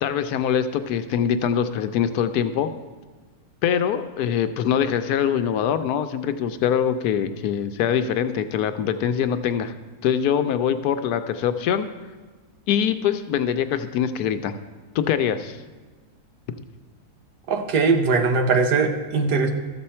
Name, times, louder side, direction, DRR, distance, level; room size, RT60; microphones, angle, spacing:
voice 1, 0.0-2.7 3.6-9.7 10.0-11.9 12.7-14.5 14.9-15.6, left 8 dB, 75° left, 10 dB, 1.1 m, -23 dB
voice 2, 17.5-19.5, right 4 dB, 80° right, 6 dB, 1.4 m, -20 dB
13.5 x 7.0 x 4.3 m, 1.3 s
omnidirectional pair, 1.7 m